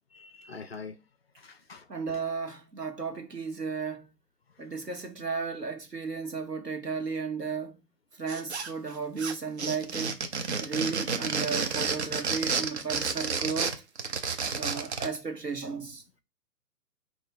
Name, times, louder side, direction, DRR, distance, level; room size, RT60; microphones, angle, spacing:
voice 1, 0.1-1.0 1.4-2.2 8.6-8.7 14.6-15.0, left 4 dB, 45° left, 0.4 m, -46 dB
voice 2, 1.9-4.1 4.6-7.8 8.2-10.2 10.6-13.8 14.5-16.0, right 5 dB, 90° right, 1.2 m, -34 dB
sound 1, 8.3-8.9 9.2-15.2, right 5 dB, 45° right, 0.6 m, -30 dB
4.4 x 2.5 x 3.8 m
figure-of-eight pair, 125°, 47 cm